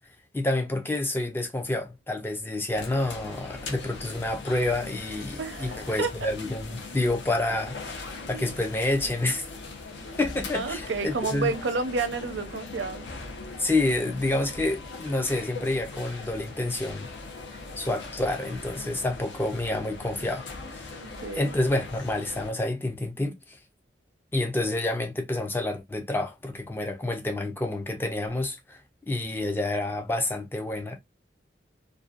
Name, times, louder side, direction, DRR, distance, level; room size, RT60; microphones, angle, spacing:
voice 1, 0.3-8.0 8.3-9.4 10.2-11.5 13.6-17.1 17.8-23.6 24.3-28.8 29.1-31.0, left 2 dB, 10° left, 0.3 m, -28 dB
sound 1, 2.7-22.5, left 3 dB, 85° left, 0.6 m, -40 dB
voice 2, 5.4-6.1 8.3-8.5 10.5-13.0 21.0-21.5, right 3 dB, 85° right, 0.5 m, -30 dB
2.5 x 2.2 x 2.3 m
head